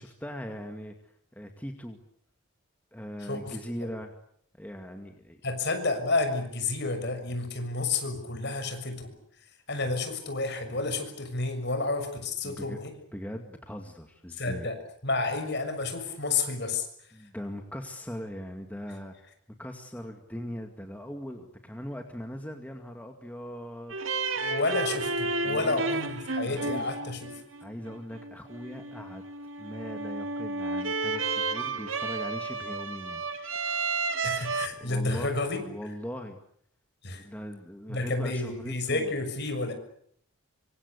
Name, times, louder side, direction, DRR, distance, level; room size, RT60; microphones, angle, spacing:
voice 1, 0.0-2.0 2.9-4.1 4.6-5.4 12.4-12.8 13.1-14.7 17.1-19.1 19.6-24.0 25.4-25.9 26.4-26.9 27.6-29.2 29.6-33.2 34.8-35.3 35.7-36.4 37.1-39.1, equal, 5° left, 4 dB, 2.2 m, -40 dB
voice 2, 3.3-3.9 5.4-9.1 9.7-12.9 14.4-14.8 15.0-16.9 24.4-27.4 34.2-35.6 37.0-37.2 37.9-39.7, left 3 dB, 50° left, 7 dB, 6.7 m, -30 dB
Sad bluesy violin, 23.9-34.7, right 3 dB, 65° right, 2.2 m, -32 dB
26.0 x 25.5 x 8.4 m, 0.66 s
head